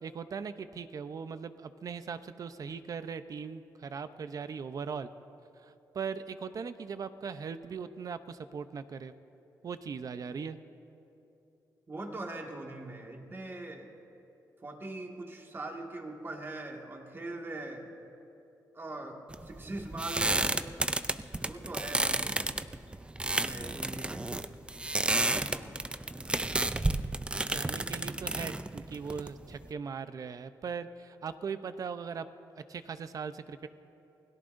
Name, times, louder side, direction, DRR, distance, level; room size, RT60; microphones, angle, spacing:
voice 1, 0.0-5.1 5.9-9.1 9.6-10.6 27.5-32.3 32.6-33.7, right 6 dB, 55° right, 11 dB, 0.7 m, -39 dB
voice 2, 11.9-13.9 14.6-17.9 18.7-20.8 21.4-22.6 23.2-24.3 25.1-25.7, right 2 dB, 30° right, 1 dB, 2.0 m, -41 dB
sound 1, 19.3-29.7, right 2 dB, 15° right, 0.4 m, -32 dB
28.5 x 17.5 x 2.6 m, 2.8 s
cardioid pair, 90°, 7 cm